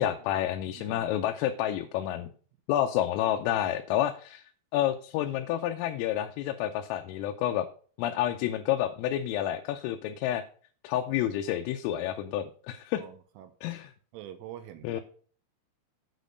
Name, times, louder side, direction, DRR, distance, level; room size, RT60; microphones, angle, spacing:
voice 1, 0.0-2.3 2.7-4.4 4.7-7.7 8.0-10.4 10.8-13.0 13.6-13.9 14.8-15.0, left 11 dB, 85° left, 4 dB, 3.4 m, -29 dB
voice 2, 0.7-1.2 12.9-13.5 14.1-15.0, right 12 dB, 80° right, 10 dB, 3.2 m, -45 dB
9.2 x 6.4 x 5.1 m, 0.42 s
omnidirectional pair, 5.9 m